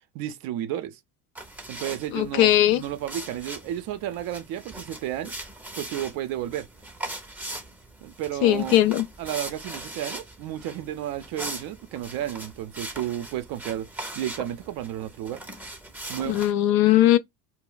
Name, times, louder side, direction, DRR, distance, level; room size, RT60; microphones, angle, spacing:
voice 1, 0.1-1.0 1.7-5.3 5.8-6.7 8.0-8.8 9.2-13.9 14.2-15.4 16.1-16.4, right 12 dB, 50° right, 0.6 m, -32 dB
sound 1, 1.3-16.5, right 1 dB, 5° right, 0.6 m, -40 dB
voice 2, 2.1-2.8 8.4-9.1 16.3-17.2, left 13 dB, 50° left, 0.5 m, -19 dB
2.2 x 2.1 x 3.7 m
hypercardioid pair, 75°, 46 cm